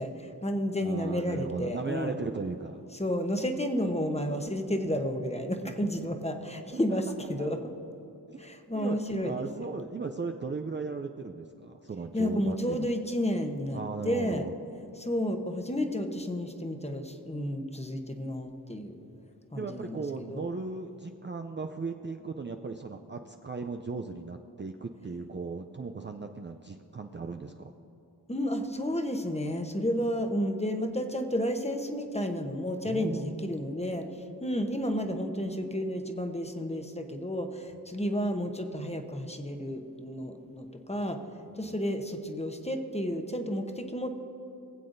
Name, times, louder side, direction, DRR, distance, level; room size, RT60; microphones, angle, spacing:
voice 1, 0.0-2.2 2.9-7.8 8.4-9.7 12.1-14.4 14.9-19.0 19.5-20.4 28.3-41.2 41.5-44.2, equal, 15° left, 5 dB, 0.9 m, -31 dB
voice 2, 0.8-2.8 5.6-5.7 6.7-7.0 7.4-7.5 8.3-8.4 8.7-9.0 9.2-12.9 13.7-14.5 19.5-27.7 32.8-33.5 41.6-41.8, right 4 dB, 30° right, 4 dB, 0.4 m, -37 dB
20.0 x 7.6 x 2.6 m, 3.0 s
cardioid pair, 45°, 42 cm